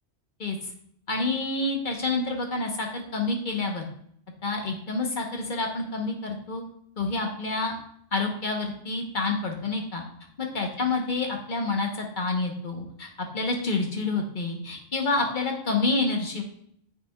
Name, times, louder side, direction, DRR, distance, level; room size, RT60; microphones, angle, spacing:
voice 1, 1.1-3.9 4.4-6.6 7.0-7.7 8.1-10.0 10.4-13.1 13.3-16.4, left 3 dB, 45° left, 2 dB, 1.2 m, -28 dB
9.4 x 5.0 x 2.3 m, 0.66 s
omnidirectional pair, 1.2 m